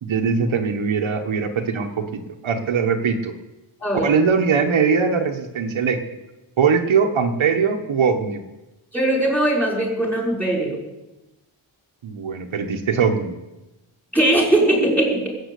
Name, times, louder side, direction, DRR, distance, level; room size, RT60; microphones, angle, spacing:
voice 1, 0.0-3.3 4.0-6.0 6.6-8.4 12.0-13.4, right 6 dB, 70° right, 3 dB, 1.4 m, -21 dB
voice 2, 3.8-4.1 8.9-10.8 14.1-15.3, right 1 dB, 5° left, -2 dB, 4.8 m, -20 dB
20.0 x 7.5 x 8.4 m, 1.0 s
wide cardioid pair, 155°, 48 cm